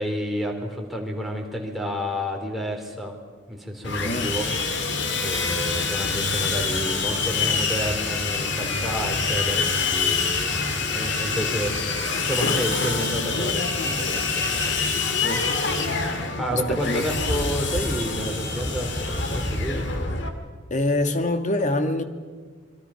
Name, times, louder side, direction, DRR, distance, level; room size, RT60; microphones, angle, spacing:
voice 1, 0.0-3.1 3.5-4.5 4.8-4.9 5.2-11.7 12.2-14.4 16.4-19.9, equal, ahead, 0 dB, 3.7 m, -30 dB
Sawing, 3.8-20.3, left 4 dB, 65° left, 2.4 m, -26 dB
voice 2, 15.2-16.0 16.5-17.0 20.7-22.0, left 2 dB, 40° left, 7 dB, 1.7 m, -25 dB
27.0 x 23.0 x 5.8 m, 1.5 s
head